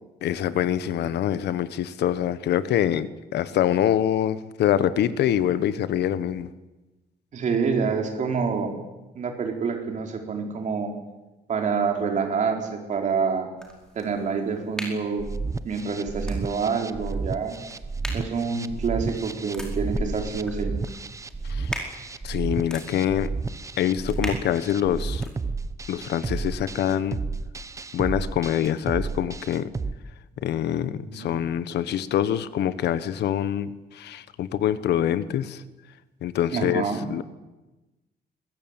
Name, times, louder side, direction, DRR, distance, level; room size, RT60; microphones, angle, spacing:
voice 1, 0.2-6.5 21.5-21.7 22.2-23.3 23.8-25.3 25.9-27.2 27.9-29.7 30.4-35.6 36.2-37.2, left 10 dB, 85° left, 14 dB, 1.4 m, -25 dB
voice 2, 7.3-8.7 9.1-10.9 11.5-13.5 13.9-15.3 15.6-17.5 18.1-20.8 31.0-31.5 36.5-37.0, right 5 dB, 45° right, 3 dB, 4.5 m, -27 dB
sound 1, 13.6-25.3, equal, 5° left, 4.8 m, -40 dB
sound 2, 15.2-29.9, right 4 dB, 20° right, 1.0 m, -32 dB
22.5 x 20.5 x 9.1 m, 1.1 s
cardioid pair, 165°, 17 cm